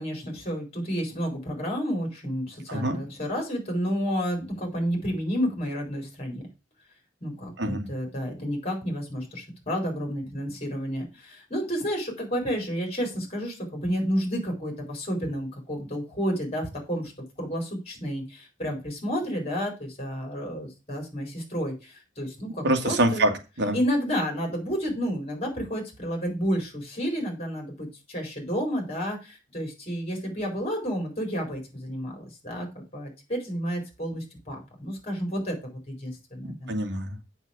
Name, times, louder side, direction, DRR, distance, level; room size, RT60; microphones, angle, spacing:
voice 1, 0.0-6.5 7.2-17.1 17.4-23.2 23.7-36.8, equal, 35° left, 2 dB, 4.3 m, -31 dB
voice 2, 2.7-3.0 7.6-7.9 22.6-23.8 36.4-37.3, right 1 dB, 65° right, 4 dB, 1.8 m, -26 dB
8.1 x 6.2 x 5.2 m, 0.28 s
head